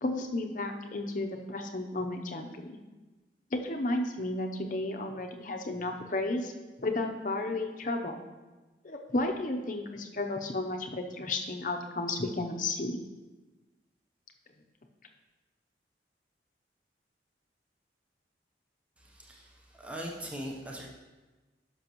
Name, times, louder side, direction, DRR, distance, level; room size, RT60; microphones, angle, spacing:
voice 1, 0.0-2.7 3.5-6.5 6.8-8.2 8.8-13.0, left 2 dB, 45° left, 4 dB, 0.7 m, -33 dB
voice 2, 19.0-20.9, equal, 5° right, -1 dB, 0.7 m, -41 dB
10.5 x 6.1 x 3.0 m, 1.2 s
head